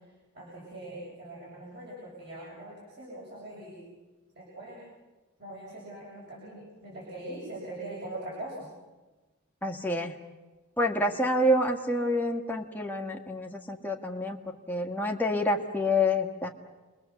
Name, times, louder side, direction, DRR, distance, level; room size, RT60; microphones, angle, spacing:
voice 1, 0.3-3.8 4.4-4.8 5.4-8.7, right 1 dB, 50° right, -5 dB, 6.9 m, -42 dB
voice 2, 9.6-10.1 10.8-14.4 14.7-16.5, left 1 dB, 10° left, 1 dB, 1.8 m, -27 dB
29.5 x 22.5 x 7.2 m, 1.2 s
head